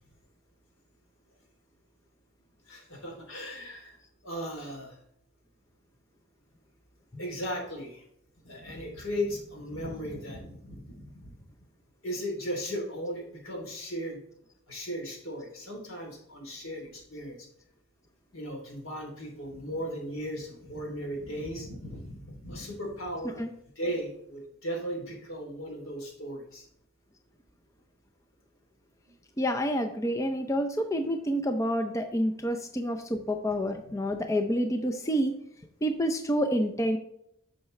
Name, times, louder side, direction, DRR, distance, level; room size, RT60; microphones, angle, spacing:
voice 1, 2.7-4.0 4.2-5.0 7.2-8.0 8.4-11.4 12.0-14.2 14.7-17.4 18.3-23.4 23.7-26.6 33.1-33.2, equal, 80° left, 1 dB, 3.1 m, -37 dB
voice 2, 29.4-35.3 35.8-37.0, equal, 15° left, 5 dB, 0.5 m, -28 dB
10.5 x 6.6 x 3.2 m, 0.72 s
head